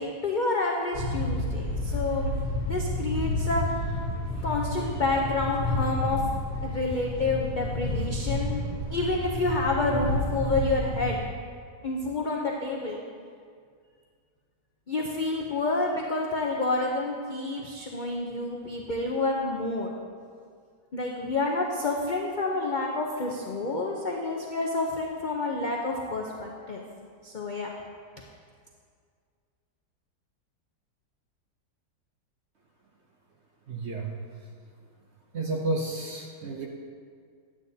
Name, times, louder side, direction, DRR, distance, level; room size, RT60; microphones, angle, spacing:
voice 1, 0.0-2.3 2.7-3.6 4.4-6.2 6.6-8.6 8.9-11.2 11.8-13.0 14.9-19.9 20.9-26.8 27.2-27.7, left 2 dB, 75° left, -1 dB, 0.4 m, -29 dB
sound 1, 0.9-11.2, left 1 dB, 50° left, 1.4 m, -30 dB
voice 2, 33.7-34.1 35.3-36.7, right 2 dB, 60° right, 1 dB, 0.7 m, -31 dB
11.0 x 8.6 x 2.7 m, 2.1 s
omnidirectional pair, 1.8 m